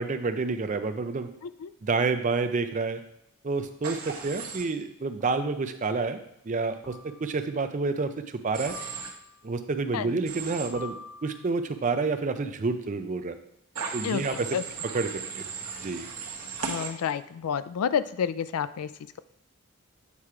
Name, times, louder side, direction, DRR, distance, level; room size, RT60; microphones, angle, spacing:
voice 1, 0.0-1.3 1.8-3.0 3.4-8.8 9.4-11.0 11.2-13.4 13.9-14.5 14.9-15.5 15.8-16.1, right 4 dB, 35° right, 9 dB, 0.4 m, -29 dB
Human voice / Train, 3.8-4.6 8.5-9.1 10.3-10.7 13.8-16.9, right 5 dB, 75° right, 1.1 m, -36 dB
sound 1, 5.2-5.6 6.8-7.4 8.7-9.4 10.7-11.7, left 3 dB, 5° right, 1.4 m, -46 dB
voice 2, 16.6-18.9, left 7 dB, 80° left, 14 dB, 0.4 m, -29 dB
8.3 x 3.0 x 4.7 m, 0.79 s
head